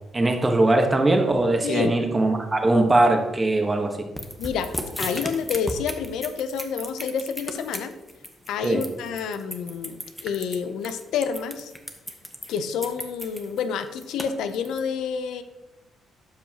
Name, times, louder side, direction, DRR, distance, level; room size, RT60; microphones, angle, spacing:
voice 1, 0.1-4.0 8.6-8.8, right 2 dB, 20° right, 4 dB, 1.2 m, -20 dB
voice 2, 1.6-2.0 4.4-4.7 5.0-7.9 8.5-11.7 12.5-15.4, left 6 dB, 85° left, 10 dB, 0.6 m, -29 dB
sound 1, 4.2-14.8, equal, 5° left, 1.0 m, -35 dB
12.0 x 5.5 x 2.9 m, 1.0 s
cardioid pair, 90°, 0 cm